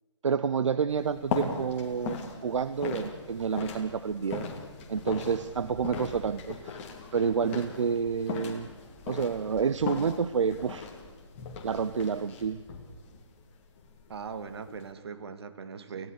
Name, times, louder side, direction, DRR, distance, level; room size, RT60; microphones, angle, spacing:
voice 1, 0.2-4.5 4.9-6.8 7.1-8.7 9.1-10.9 11.6-12.6, right 6 dB, 75° right, 14 dB, 0.8 m, -29 dB
sound 1, 0.9-14.9, left 5 dB, 25° left, 2.5 m, -39 dB
voice 2, 14.1-16.1, right 6 dB, 55° right, 10 dB, 1.9 m, -40 dB
29.0 x 16.5 x 6.6 m, 1.4 s
hypercardioid pair, 160°, 16 cm